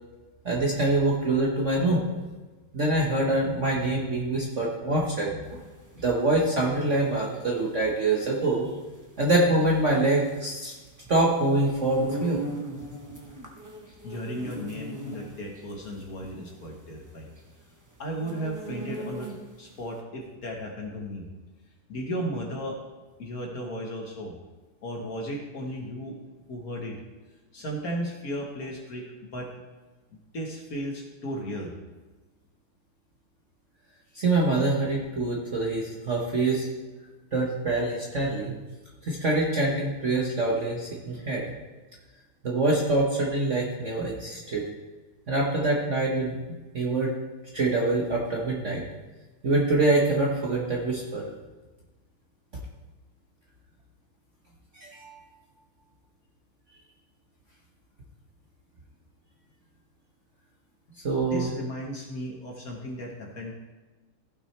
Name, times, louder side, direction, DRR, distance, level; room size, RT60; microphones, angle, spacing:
voice 1, 0.4-2.0 2.7-5.6 6.0-8.7 9.2-10.7 11.1-12.4 34.1-36.7 37.3-38.6 39.0-41.4 42.4-44.6 45.3-46.4 46.7-47.1 47.5-48.8 49.4-51.3 54.8-55.2 61.0-61.5, right 2 dB, 45° right, -3 dB, 1.1 m, -25 dB
sound 1, 5.5-19.7, right 2 dB, 25° right, 0.4 m, -40 dB
voice 2, 14.0-17.3 18.0-19.3 19.6-21.2 21.9-22.8 23.2-24.3 24.8-26.1 26.5-27.0 27.5-29.0 29.3-29.5 30.3-31.7 61.2-63.5, equal, 50° left, 0 dB, 1.5 m, -35 dB
15.5 x 6.1 x 3.3 m, 1.2 s
omnidirectional pair, 2.4 m